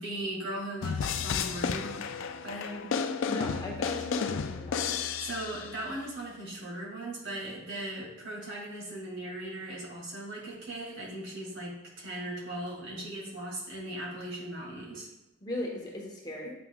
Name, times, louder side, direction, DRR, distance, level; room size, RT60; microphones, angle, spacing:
voice 1, 0.0-1.9 2.4-2.9 5.2-15.1, right 1 dB, 60° right, -4 dB, 2.3 m, -38 dB
sound 1, 0.8-5.9, left 6 dB, 60° left, 0.3 m, -32 dB
voice 2, 3.3-5.0 15.4-16.5, left 1 dB, 20° left, -2 dB, 1.0 m, -37 dB
8.4 x 6.0 x 2.3 m, 0.96 s
head